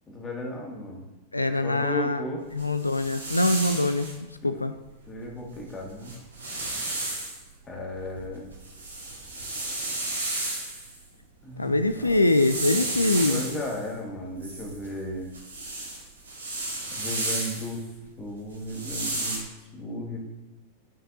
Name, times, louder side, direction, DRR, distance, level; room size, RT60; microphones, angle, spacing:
voice 1, 0.1-1.0 1.6-2.4 4.4-4.6 5.1-6.1 7.7-8.5 11.4-12.1 13.1-15.3 16.9-17.8 18.2-19.4 19.7-20.2, left 1 dB, 20° left, -2 dB, 1.9 m, -35 dB
voice 2, 1.3-2.2 2.5-4.7 11.6-13.6, left 2 dB, 85° left, 9 dB, 0.3 m, -24 dB
sound 1, 2.6-4.1 5.5-5.6 5.9-7.4 8.0-11.0 11.9-13.8 14.4-17.8 18.6-19.4, right 2 dB, 75° right, 1.9 m, -33 dB
11.0 x 5.3 x 2.7 m, 1.1 s
figure-of-eight pair, 90°, 0 cm